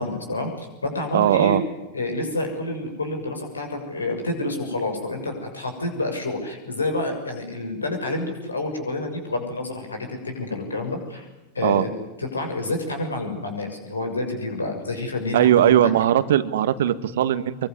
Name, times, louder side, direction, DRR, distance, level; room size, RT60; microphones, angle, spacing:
voice 1, 0.0-1.6 1.9-11.3 11.5-11.9 12.2-15.9, left 2 dB, 75° left, 4 dB, 7.1 m, -28 dB
voice 2, 1.1-1.6 11.6-11.9 15.3-17.6, right 11 dB, 60° right, 14 dB, 1.5 m, -19 dB
25.5 x 23.5 x 9.8 m, 0.99 s
figure-of-eight pair, 90°, 0 cm